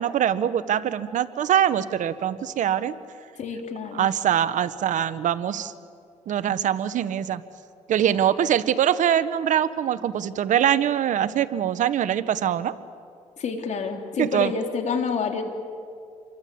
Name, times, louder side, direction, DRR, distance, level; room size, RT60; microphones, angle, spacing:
voice 1, 0.0-3.0 3.9-5.7 6.3-7.4 7.9-12.7 14.2-14.5, right 10 dB, 70° right, 14 dB, 1.1 m, -23 dB
voice 2, 3.4-4.1 13.4-15.4, left 5 dB, 60° left, 4 dB, 3.7 m, -28 dB
28.5 x 23.5 x 8.6 m, 2.3 s
cardioid pair, 85°, 13 cm